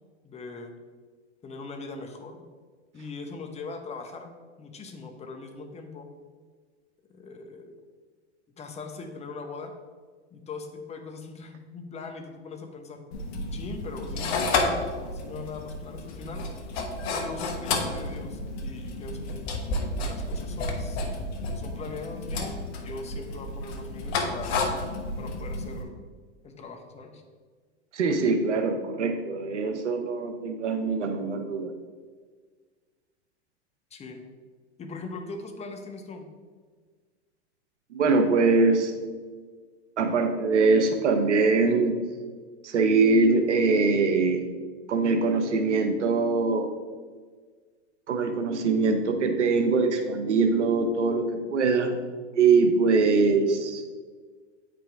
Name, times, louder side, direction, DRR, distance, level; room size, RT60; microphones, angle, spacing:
voice 1, 0.2-0.7 1.4-2.5 2.9-4.3 4.6-6.1 7.1-7.8 8.5-9.7 10.3-13.0 13.5-16.5 17.1-19.6 19.8-21.0 21.5-24.5 25.2-25.9 26.4-27.2 33.9-34.2 34.8-36.3, left 3 dB, 20° left, 4 dB, 0.9 m, -40 dB
sound 1, 13.1-25.8, left 2 dB, 65° left, 1.2 m, -31 dB
voice 2, 27.9-31.7 37.9-38.9 40.0-42.0 42.6-44.4 44.9-46.7 48.1-51.9 52.3-53.8, right 4 dB, 85° right, 6 dB, 0.8 m, -23 dB
8.7 x 5.1 x 3.5 m, 1.5 s
hypercardioid pair, 110°, 34 cm